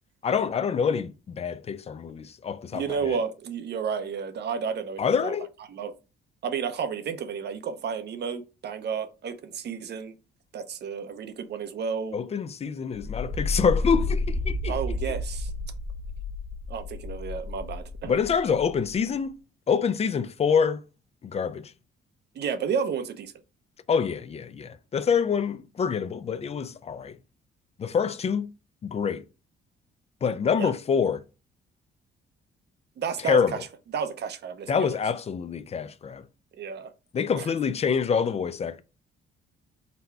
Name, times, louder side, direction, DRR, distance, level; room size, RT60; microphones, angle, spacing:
voice 1, 0.2-3.2 5.0-5.5 12.1-14.8 18.1-19.3 19.7-20.8 21.2-21.7 23.9-27.1 27.8-28.5 28.8-29.2 30.2-31.2 33.2-33.6 34.7-36.2 37.1-38.8, left 6 dB, 30° left, 0.4 m, -26 dB
voice 2, 2.7-5.3 5.7-5.9 6.4-10.1 10.5-12.2 14.7-15.5 16.7-18.1 22.3-23.3 30.6-30.7 33.0-33.6 33.9-34.9 36.5-36.9 37.4-37.5, right 6 dB, 55° right, 0.7 m, -31 dB
sound 1, 12.9-19.0, left 2 dB, ahead, 1.0 m, -31 dB
4.0 x 2.2 x 4.2 m
cardioid pair, 90°, 20 cm